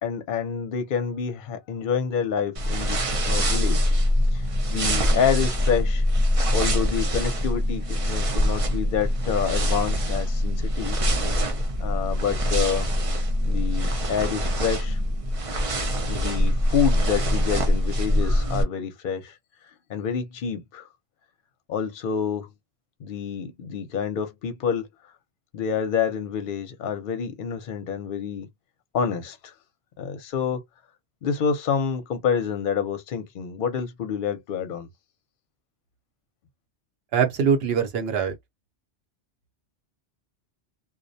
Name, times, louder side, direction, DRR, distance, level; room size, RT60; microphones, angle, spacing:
voice 1, 0.0-3.8 4.3-4.4 4.7-6.0 6.5-11.0 11.8-12.9 13.4-15.0 16.1-19.3 19.9-20.9 21.7-22.5 23.0-24.9 25.5-28.5 28.9-29.5 30.0-30.6 31.2-34.9, left 7 dB, 55° left, 0.7 m, -28 dB
sound 1, 2.5-18.6, equal, 45° right, 0.4 m, -24 dB
voice 2, 37.1-38.3, right 7 dB, 65° right, 0.8 m, -22 dB
2.3 x 2.1 x 2.6 m
omnidirectional pair, 1.2 m